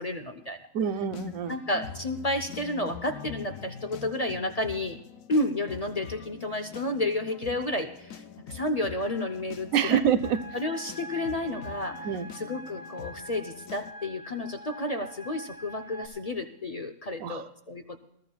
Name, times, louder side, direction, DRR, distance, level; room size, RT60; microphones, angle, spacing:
voice 1, 0.0-0.6 1.5-5.0 5.3-10.0 10.5-12.1 12.3-18.0, left 1 dB, 35° left, 7 dB, 0.7 m, -31 dB
voice 2, 0.7-1.6 9.7-10.4 12.0-12.3 17.2-17.4, right 8 dB, 85° right, 9 dB, 1.2 m, -26 dB
sound 1, 1.1-13.9, left 7 dB, 85° left, 1.1 m, -45 dB
sound 2, 10.2-16.1, right 2 dB, 60° left, 2.8 m, -44 dB
21.0 x 14.0 x 2.3 m, 0.81 s
omnidirectional pair, 1.4 m